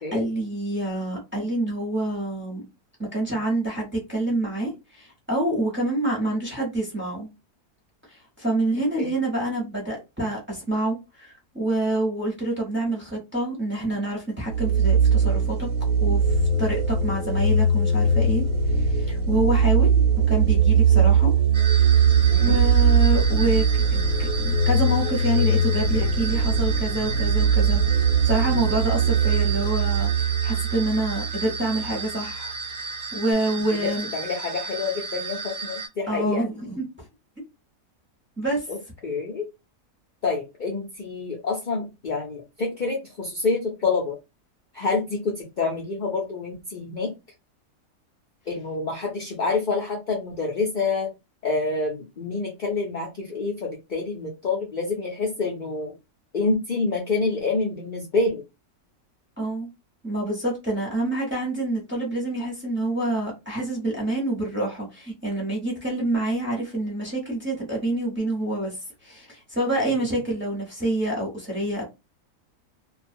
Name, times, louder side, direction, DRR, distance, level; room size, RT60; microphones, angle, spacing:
voice 1, 0.1-2.6 3.1-7.3 8.1-15.7 16.0-20.0 20.3-21.3 21.7-21.9 22.4-27.8 28.2-32.5 33.1-34.1 36.1-36.9 38.4-38.7 59.4-59.7 60.0-68.8 69.0-71.8, right 1 dB, 10° right, 0.7 m, -27 dB
sound 1, 14.5-31.9, right 5 dB, 90° right, 1.1 m, -20 dB
sound 2, 21.5-35.9, right 4 dB, 65° right, 0.3 m, -34 dB
voice 2, 33.7-36.5 38.7-38.8 39.0-39.5 40.2-44.2 44.7-47.1 48.5-51.1 51.4-55.9 56.3-58.4, left 3 dB, 70° left, 0.4 m, -27 dB
2.4 x 2.2 x 2.6 m
omnidirectional pair, 1.6 m